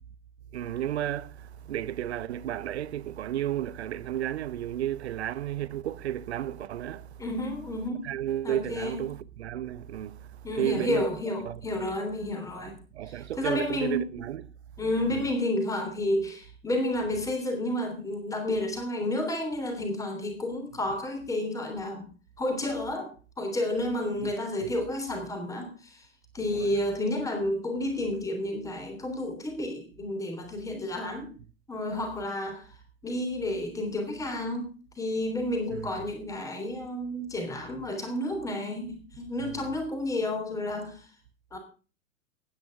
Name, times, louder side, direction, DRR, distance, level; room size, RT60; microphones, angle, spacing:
voice 1, 0.5-7.3 8.0-11.6 12.9-14.5 14.8-15.3 24.2-24.3 24.6-24.7 26.4-26.8 35.7-35.9 39.4-39.7, right 12 dB, 50° right, 1.0 m, -33 dB
voice 2, 7.2-8.1 8.4-9.0 10.4-12.8 13.1-14.1 14.8-22.0 22.4-26.1 26.3-31.3 31.7-32.7 33.0-41.1 41.5-41.6, left 1 dB, 10° left, 3.3 m, -31 dB
18.0 x 9.8 x 3.7 m
figure-of-eight pair, 100°, 40 cm